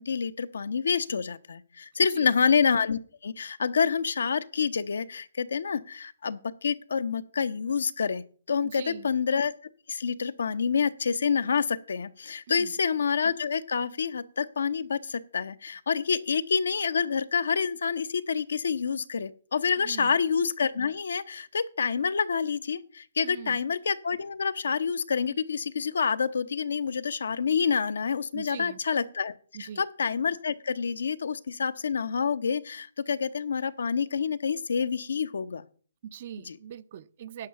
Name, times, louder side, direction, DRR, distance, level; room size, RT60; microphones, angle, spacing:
voice 1, 0.0-9.5 9.9-29.3 29.6-35.6 36.5-36.6, left 6 dB, 80° left, 0.8 m, -28 dB
voice 2, 8.6-9.1 12.5-12.7 19.8-20.2 23.2-23.6 28.3-28.8 29.5-29.8 36.0-37.5, right 9 dB, 45° right, 0.5 m, -42 dB
10.5 x 5.5 x 7.0 m
hypercardioid pair, 155°, 0 cm